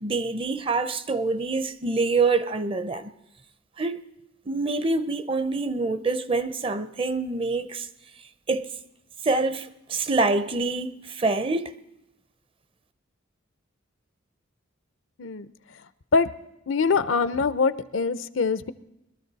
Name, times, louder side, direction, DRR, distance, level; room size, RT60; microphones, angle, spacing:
voice 1, 0.0-3.1 3.8-4.0 4.5-7.9 8.5-8.7 9.2-11.7, right 3 dB, 25° right, 0.5 m, -26 dB
voice 2, 16.7-18.7, left 4 dB, 70° left, 0.6 m, -23 dB
21.5 x 13.0 x 4.0 m
head